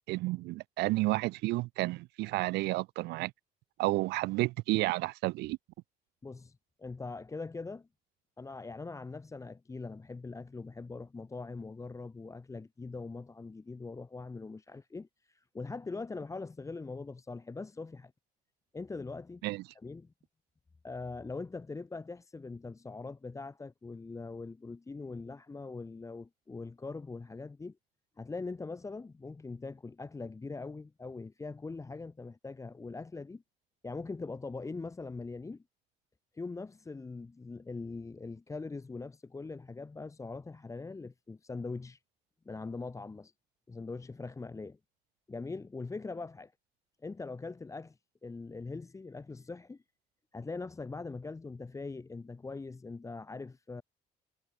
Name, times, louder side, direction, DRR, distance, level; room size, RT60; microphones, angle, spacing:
voice 1, 0.0-3.3 3.8-5.6 19.4-19.6, right 20 dB, 80° right, 0.4 m, -31 dB
voice 2, 6.2-7.9 8.4-18.1 18.7-19.4 19.8-20.1 20.8-27.8 28.2-33.4 33.8-35.6 36.3-42.0 42.4-43.3 43.7-44.8 45.3-46.5 47.0-49.8 50.3-53.8, left 3 dB, 20° left, 1.2 m, -42 dB
cardioid pair, 110°, 17 cm